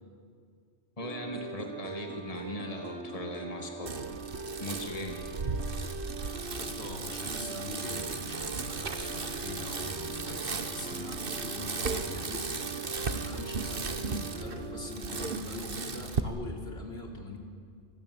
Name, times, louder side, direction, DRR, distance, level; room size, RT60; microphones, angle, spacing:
voice 1, 1.0-4.1 4.6-5.3, left 1 dB, 35° left, 3 dB, 2.3 m, -39 dB
sound 1, 1.0-15.4, right 4 dB, 85° right, 1.8 m, -42 dB
Bicycle, 3.9-16.2, right 4 dB, 60° right, 1.6 m, -36 dB
voice 2, 6.6-12.6 13.2-17.4, left 2 dB, 75° left, 2 dB, 3.6 m, -42 dB
28.0 x 20.0 x 9.6 m, 2.2 s
omnidirectional pair, 1.1 m